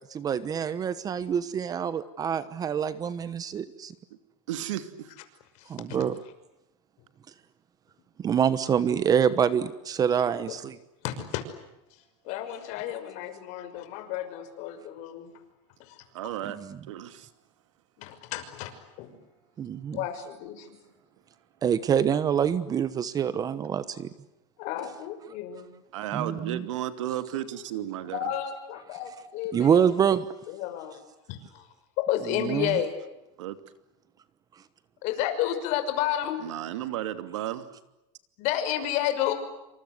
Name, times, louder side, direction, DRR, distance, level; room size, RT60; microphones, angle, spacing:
voice 1, 0.1-3.9 5.7-6.2 8.2-10.8 16.6-16.8 19.6-20.0 21.6-24.1 26.1-26.6 29.5-30.2 32.4-32.8, right 8 dB, 25° right, 15 dB, 1.2 m, -26 dB
voice 2, 4.5-5.1 16.1-16.6 16.9-17.3 25.9-28.2 33.4-33.6 36.4-37.7, right 12 dB, 90° right, 10 dB, 2.8 m, -33 dB
voice 3, 5.6-6.0 10.5-10.6 11.0-11.4 12.2-15.3 15.8-16.0 18.0-19.1 19.9-20.8 24.6-25.7 28.1-29.8 30.5-31.0 31.3-31.7 32.0-32.9 35.0-36.4 38.4-39.3, left 11 dB, 50° left, 9 dB, 5.8 m, -31 dB
28.0 x 26.0 x 8.0 m, 0.93 s
supercardioid pair, 145°, 15 cm